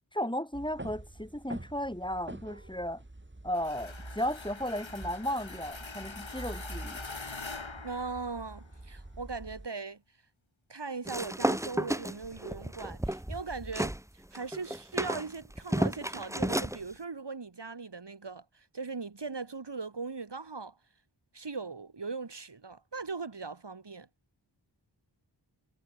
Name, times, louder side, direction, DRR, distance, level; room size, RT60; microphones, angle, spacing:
voice 1, 0.1-3.0 3.4-7.0, equal, 10° left, 6.2 m, -35 dB
sound 1, 0.5-9.7, right 2 dB, 25° right, 2.9 m, -46 dB
sound 2, 3.5-8.8, left 4 dB, 80° left, 3.6 m, -44 dB
voice 2, 7.8-10.0 10.7-20.8 21.3-24.1, right 4 dB, 60° right, 1.8 m, -39 dB
sound 3, 11.1-14.0 14.3-16.8, right 1 dB, 5° right, 1.0 m, -32 dB
wide cardioid pair, 45°, 46 cm